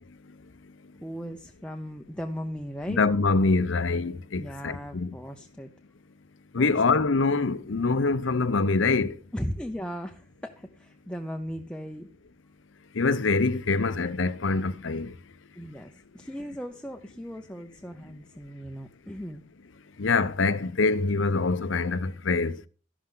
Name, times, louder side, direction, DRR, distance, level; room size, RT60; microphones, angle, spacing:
voice 1, 1.0-3.0 4.4-5.7 6.6-6.7 9.3-12.1 15.6-19.4, equal, 5° left, 0.6 m, -37 dB
voice 2, 2.9-5.1 6.5-9.1 13.0-15.1 20.0-22.6, left 3 dB, 80° left, 0.7 m, -24 dB
13.0 x 11.5 x 3.8 m
head